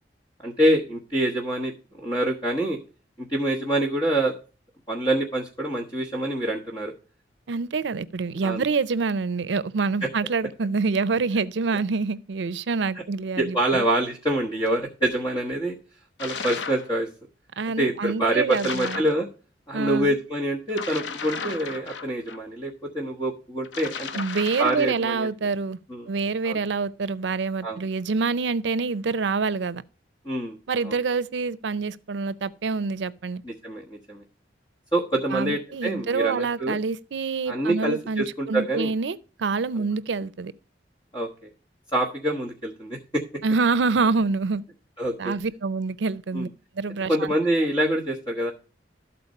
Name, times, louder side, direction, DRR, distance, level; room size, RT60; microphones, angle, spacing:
voice 1, 0.4-2.8 3.2-4.3 4.9-6.9 8.4-8.6 13.4-15.7 16.2-17.1 17.8-19.3 19.7-24.1 24.6-25.3 25.9-26.1 26.4-26.6 27.6-27.8 30.2-30.6 30.8-31.0 33.4-34.2 34.9-36.8 37.5-38.9 39.8-39.9 41.1-41.3 41.9-43.2 45.0-45.3 46.3-46.5 47.1-48.5, right 1 dB, 25° left, 1.3 m, -26 dB
voice 2, 7.5-13.8 17.6-19.0 19.7-20.2 24.1-25.8 26.1-29.8 30.7-33.4 35.3-40.5 43.4-44.6 45.2-46.5 46.8-47.3, right 4 dB, 75° right, 0.5 m, -26 dB
sound 1, 16.2-16.9 18.5-19.2 20.7-22.4 23.6-25.0, left 5 dB, 80° left, 0.7 m, -34 dB
13.0 x 4.4 x 5.3 m
head